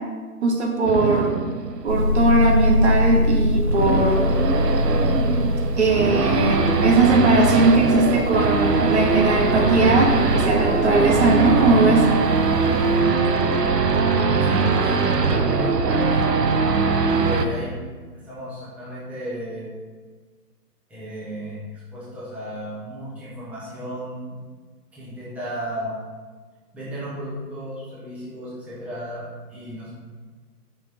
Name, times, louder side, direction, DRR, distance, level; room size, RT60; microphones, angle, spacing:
voice 1, 0.4-1.4 1.8-4.2 5.8-12.1, right 2 dB, 45° right, 0 dB, 1.1 m, -19 dB
Race car auto racing / Idling / Accelerating revving vroom, 0.9-17.5, right 4 dB, 80° right, 0.8 m, -21 dB
sound 1, 1.9-13.0, left 2 dB, 20° right, 1.1 m, -25 dB
voice 2, 14.5-16.3 17.1-17.7 18.2-19.7 20.9-24.4 24.9-25.9 26.7-29.9, equal, 5° right, -10 dB, 1.2 m, -33 dB
5.8 x 4.8 x 4.9 m, 1.4 s
figure-of-eight pair, 140°, 48 cm